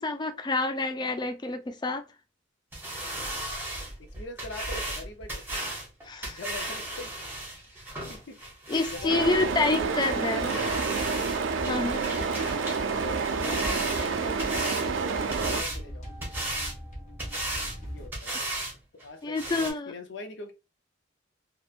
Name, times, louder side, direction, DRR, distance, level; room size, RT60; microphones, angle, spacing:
voice 1, 0.0-2.0 6.0-6.4 8.7-10.5 11.7-12.0 19.2-19.9, left 3 dB, 25° left, 0.3 m, -28 dB
sound 1, 2.7-9.1 9.6-9.7 10.0-10.1 10.4-11.4 11.6-12.8 13.1-14.9 15.3-15.8 16.2-16.8 17.2-17.8 18.1-18.7 19.0-19.1 19.4-19.7, right 1 dB, 10° right, 0.8 m, -35 dB
voice 2, 4.0-5.4 6.2-7.4 8.1-8.4 8.9-11.1 11.8-16.4 17.9-18.4 18.9-20.5, left 2 dB, 70° left, 0.6 m, -42 dB
sound 2, 8.9-18.1, equal, 40° left, 0.9 m, -41 dB
sound 3, 9.1-15.6, right 5 dB, 90° right, 0.4 m, -29 dB
2.8 x 2.1 x 2.4 m
head